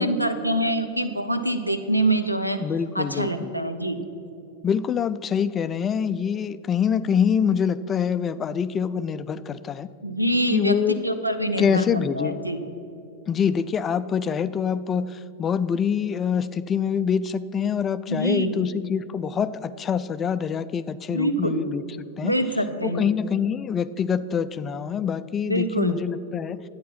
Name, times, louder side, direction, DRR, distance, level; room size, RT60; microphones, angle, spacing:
voice 1, 0.0-2.6 2.9-4.0 10.0-10.8 11.0-12.6 18.1-18.7 21.1-21.6 22.2-23.1 25.4-26.0, right 1 dB, 90° right, 10 dB, 0.8 m, -25 dB
voice 2, 2.6-3.5 4.6-9.9 10.5-11.0 11.6-12.4 13.3-21.8 22.2-22.4 22.8-26.6, left 7 dB, 25° left, 14 dB, 0.4 m, -25 dB
12.0 x 8.7 x 5.9 m, 2.7 s
figure-of-eight pair, 90°, 0 cm